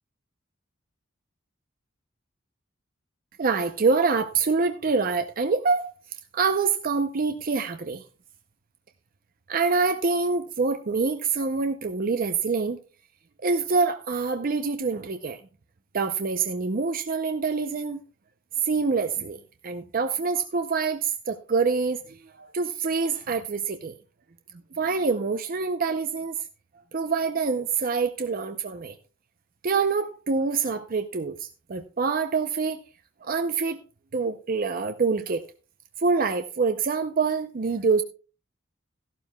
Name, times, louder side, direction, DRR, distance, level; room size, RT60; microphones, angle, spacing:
voice 1, 3.4-5.9 6.3-8.0 9.5-12.8 13.4-15.4 15.9-18.0 18.6-19.4 19.6-23.9 24.8-26.3 26.9-28.9 29.6-32.8 33.2-33.8 34.1-35.4 36.0-38.0, right 4 dB, 45° right, 0.6 m, -26 dB
14.5 x 12.0 x 2.2 m
head